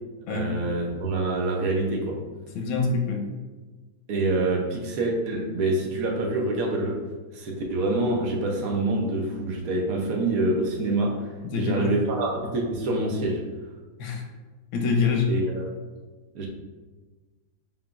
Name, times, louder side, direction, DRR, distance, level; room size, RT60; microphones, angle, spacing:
voice 1, 0.3-2.2 4.1-7.0 7.3-13.4 15.3-15.7 16.3-16.5, right 2 dB, 65° right, 0 dB, 0.9 m, -26 dB
voice 2, 2.5-3.2 11.4-11.9 14.0-14.2 14.7-15.3, left 5 dB, 90° left, 2 dB, 1.4 m, -25 dB
4.9 x 3.7 x 2.3 m, 1.3 s
omnidirectional pair, 2.1 m